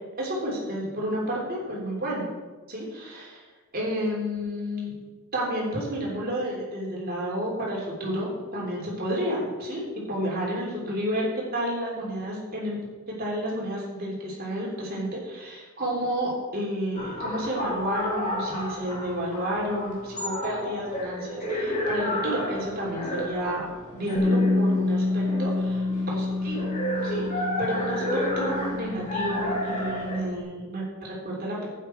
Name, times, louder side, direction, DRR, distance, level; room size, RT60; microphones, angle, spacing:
voice 1, 0.2-2.3 2.7-3.4 3.7-5.0 5.3-12.8 13.1-23.6 23.9-26.7 27.0-31.7, equal, 45° right, -4 dB, 3.5 m, -31 dB
sound 1, 16.9-30.2, left 1 dB, 35° left, 2.9 m, -32 dB
Bass guitar, 24.2-30.4, left 2 dB, 15° left, 1.2 m, -28 dB
11.5 x 8.9 x 4.6 m, 1.3 s
head